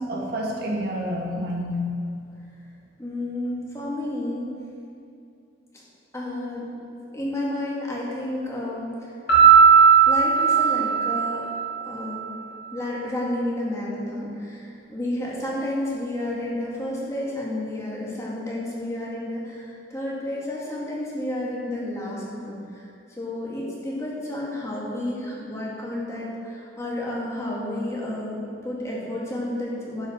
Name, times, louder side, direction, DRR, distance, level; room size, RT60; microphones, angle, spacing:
voice 1, 0.0-2.1, equal, 60° right, -2 dB, 1.7 m, -28 dB
voice 2, 3.0-4.5 6.1-6.7 7.1-9.1 10.1-11.4 11.8-12.3 12.7-30.1, left 1 dB, 15° left, -5 dB, 2.1 m, -31 dB
Piano, 9.3-12.1, right 6 dB, 55° left, 2.6 m, -16 dB
10.5 x 5.6 x 6.4 m, 2.5 s
head